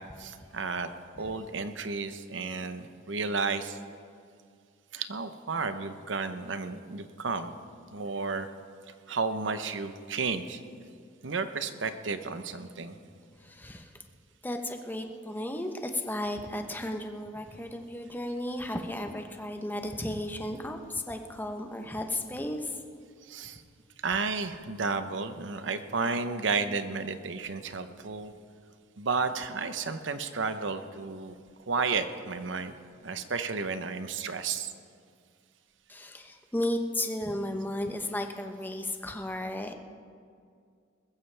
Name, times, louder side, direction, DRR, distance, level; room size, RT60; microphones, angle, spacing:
voice 1, 0.2-0.9 1.2-3.8 4.9-7.6 7.9-8.5 9.1-10.6 11.2-13.0 23.2-23.6 24.0-28.3 29.0-31.4 31.7-32.7 33.0-34.7, right 4 dB, 70° right, 10 dB, 0.9 m, -32 dB
voice 2, 13.4-13.9 14.4-22.8 35.9-39.7, left 1 dB, 10° left, 5 dB, 0.9 m, -34 dB
20.0 x 14.5 x 3.4 m, 2.2 s
head